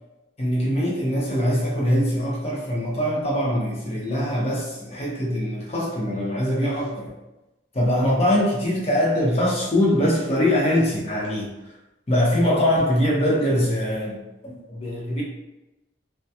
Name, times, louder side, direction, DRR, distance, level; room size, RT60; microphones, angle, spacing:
voice 1, 0.4-7.1 7.7-11.5 12.1-15.2, equal, 35° left, -4 dB, 0.7 m, -22 dB
2.3 x 2.2 x 2.7 m, 0.97 s
head